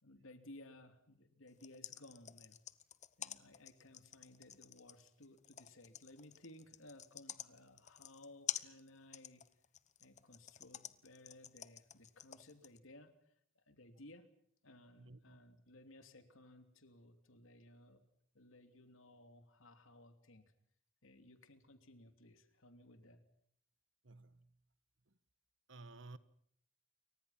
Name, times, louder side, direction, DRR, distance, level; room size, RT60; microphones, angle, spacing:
voice 1, 0.0-2.6 3.2-9.4 10.0-14.3 14.6-18.0 18.3-20.4 21.0-23.2, left 1 dB, 80° left, 3.1 m, -59 dB
sound 1, 1.5-12.8, left 10 dB, 35° left, 1.0 m, -47 dB
voice 2, 14.9-15.4 24.0-24.7 25.0-25.2 25.7-26.2, right 3 dB, 65° right, 1.4 m, -55 dB
29.0 x 24.0 x 5.9 m
head